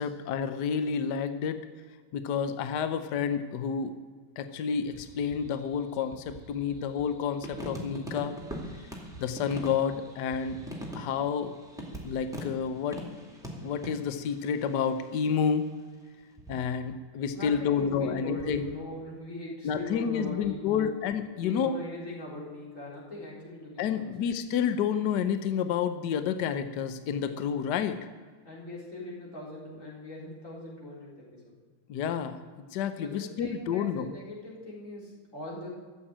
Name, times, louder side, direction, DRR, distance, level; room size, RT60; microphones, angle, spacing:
voice 1, 0.0-1.6 2.1-3.9 4.4-8.4 9.2-10.6 10.9-11.5 12.0-13.0 13.6-15.6 16.5-18.7 19.6-21.8 23.8-28.0 31.9-32.4 32.7-34.1, left 7 dB, 65° left, 9 dB, 1.3 m, -29 dB
sound 1, 4.9-15.7 16.4-17.0 17.3-18.8, equal, ahead, 2.3 m, -43 dB
voice 2, 17.3-21.0 21.4-24.2 28.4-31.5 33.0-35.7, left 1 dB, 40° left, -5 dB, 4.3 m, -41 dB
14.0 x 7.3 x 8.6 m, 1.5 s
omnidirectional pair, 2.1 m